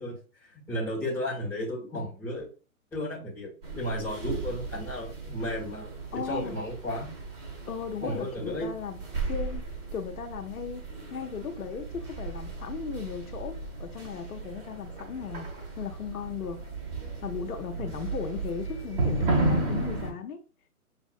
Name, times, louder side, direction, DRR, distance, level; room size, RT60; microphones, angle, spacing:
voice 1, 0.0-2.5 2.9-7.1 8.0-8.7 17.8-18.0, left 1 dB, 5° left, 1.3 m, -34 dB
sound 1, 3.6-20.1, right 3 dB, 40° right, 1.7 m, -34 dB
voice 2, 6.1-6.5 7.7-9.0 9.3-9.6 9.9-10.8 11.1-16.6 17.2-20.4, left 7 dB, 75° left, 0.8 m, -36 dB
6.4 x 2.6 x 2.4 m
hypercardioid pair, 150°, 44 cm